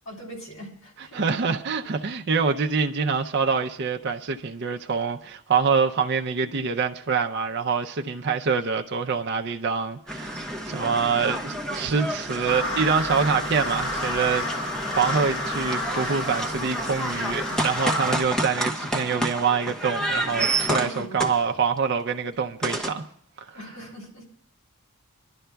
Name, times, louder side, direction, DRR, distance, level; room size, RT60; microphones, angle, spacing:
voice 1, 0.0-1.3 17.5-17.6 20.7-21.2 23.5-24.3, right 1 dB, 85° left, 3.1 m, -41 dB
voice 2, 1.1-10.4 10.7-23.0 23.5-23.6, right 5 dB, 50° right, 0.5 m, -25 dB
sound 1, 10.1-21.8 22.6-22.9, right 1 dB, 5° left, 0.7 m, -30 dB
sound 2, 12.5-18.2, left 1 dB, 60° left, 1.1 m, -31 dB
26.0 x 11.5 x 2.3 m
head